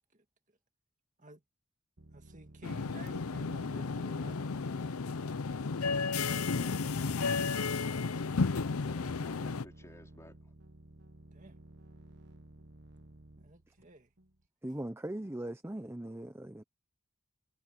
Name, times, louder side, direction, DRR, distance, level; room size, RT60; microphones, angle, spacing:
sound 1, 2.0-14.5, right 1 dB, 50° right, 1.2 m, -56 dB
voice 1, 2.1-4.4 11.3-11.5 13.4-14.1, right 2 dB, 35° right, 2.0 m, -53 dB
sound 2, 2.6-9.6, left 4 dB, 85° left, 0.7 m, -33 dB
voice 2, 5.8-6.8 8.8-10.5, left 1 dB, 15° left, 4.4 m, -55 dB
voice 3, 14.6-16.6, right 1 dB, 10° right, 0.6 m, -39 dB
head